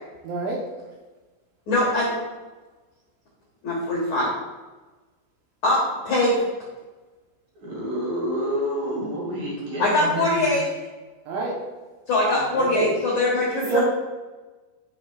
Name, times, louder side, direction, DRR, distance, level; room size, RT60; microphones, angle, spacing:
voice 1, 0.2-0.6 11.3-11.6 12.5-12.9 13.7-13.8, right 4 dB, 70° right, -3 dB, 3.0 m, -26 dB
voice 2, 1.7-2.1 3.6-4.3 5.6-5.8 6.0-6.4 9.8-10.7 12.1-13.8, left 1 dB, 75° left, -5 dB, 1.6 m, -22 dB
voice 3, 7.6-10.5, equal, 50° right, -5 dB, 3.6 m, -28 dB
13.0 x 6.2 x 2.4 m, 1.2 s
omnidirectional pair, 5.9 m